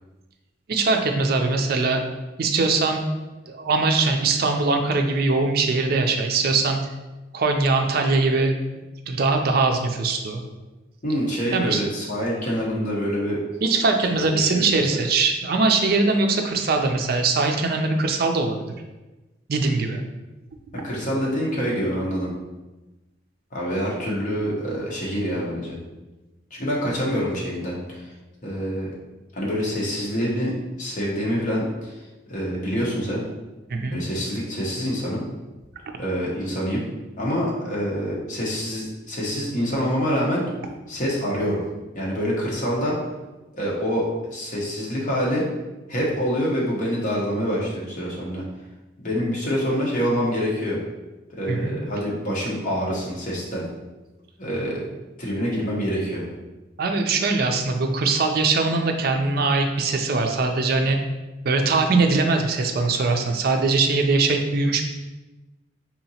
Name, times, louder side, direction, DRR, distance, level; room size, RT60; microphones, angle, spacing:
voice 1, 0.7-2.0 2.4-3.1 3.5-6.8 7.3-8.6 9.1-10.4 11.5-11.8 13.6-18.6 19.5-20.0 33.7-34.0 51.5-51.7 56.8-61.0 61.4-64.8, right 3 dB, 55° right, 4 dB, 0.4 m, -21 dB
voice 2, 11.0-13.4 14.3-14.8 20.8-22.3 23.5-25.7 26.5-28.0 28.4-28.9 29.3-30.5 30.8-31.9 32.3-33.2 33.9-35.2 36.0-36.8 37.2-40.4 40.9-41.6 41.9-43.0 43.5-45.4 45.9-48.4 49.0-50.8 51.3-53.6 54.4-54.8 55.2-56.3, equal, 45° left, -4 dB, 1.0 m, -26 dB
4.1 x 2.9 x 2.8 m, 1.1 s
head